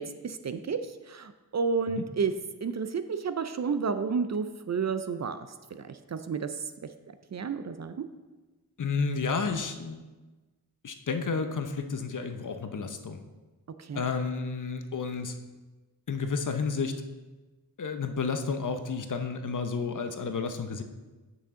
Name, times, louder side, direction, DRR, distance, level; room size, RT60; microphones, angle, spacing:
voice 1, 0.0-2.3 2.6-6.6 7.3-8.1 13.8-14.0, right 5 dB, 45° right, 10 dB, 0.5 m, -31 dB
voice 2, 8.8-10.0 10.8-13.2 13.9-15.3 16.1-16.9 17.8-20.8, left 5 dB, 50° left, 7 dB, 0.7 m, -31 dB
8.2 x 6.2 x 3.7 m, 1.2 s
wide cardioid pair, 75°, 39 cm